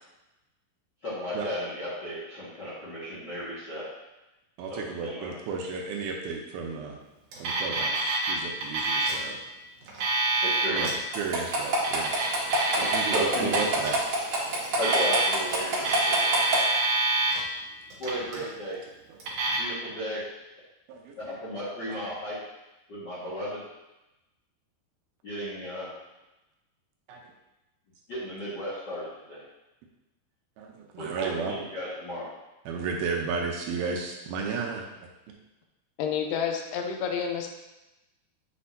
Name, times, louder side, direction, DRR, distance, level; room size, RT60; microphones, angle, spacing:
voice 1, 1.0-3.8 4.7-5.3 10.4-10.9 12.8-13.6 14.8-16.6 18.0-18.8 19.6-20.2 21.2-22.3 22.9-23.6 25.2-25.9 28.1-29.4 31.0-32.2, equal, 45° left, -9 dB, 1.5 m, -34 dB
voice 2, 4.6-7.0 7.4-9.4 10.7-12.1 12.8-14.0 18.4-18.5 19.1-19.2 20.9-21.3 21.9-22.0 27.1-27.2 30.6-31.6 32.7-34.8, right 5 dB, 80° right, 0 dB, 2.5 m, -33 dB
Alarm, 7.3-8.3 8.6-9.2 9.8-10.9 11.7-13.2 13.5-13.9 14.6-15.5 15.8-17.4 17.9-18.4 19.2-19.6, right 2 dB, 60° right, 1.7 m, -26 dB
sound 1, 11.1-16.6, right 2 dB, 45° right, 2.0 m, -26 dB
voice 3, 36.0-37.5, left 7 dB, 80° left, 4 dB, 2.7 m, -29 dB
8.3 x 6.3 x 2.8 m, 0.98 s
omnidirectional pair, 4.7 m